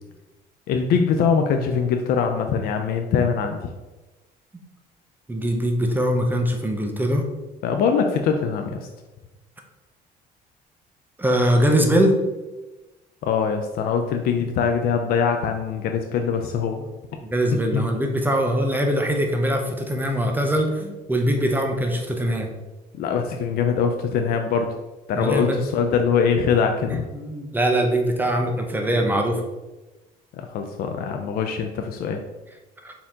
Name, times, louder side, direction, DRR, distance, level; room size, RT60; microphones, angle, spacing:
voice 1, 0.7-3.6 7.6-8.8 13.2-16.8 17.7-17.8 23.0-24.7 25.1-27.0 30.4-32.2, left 6 dB, 65° left, 5 dB, 0.4 m, -22 dB
voice 2, 5.3-7.2 11.2-12.2 16.8-16.9 17.3-22.5 25.1-25.6 26.9-29.4 32.8-32.9, equal, 10° right, 2 dB, 0.6 m, -22 dB
4.3 x 2.8 x 3.6 m, 1.1 s
cardioid pair, 110°, 17 cm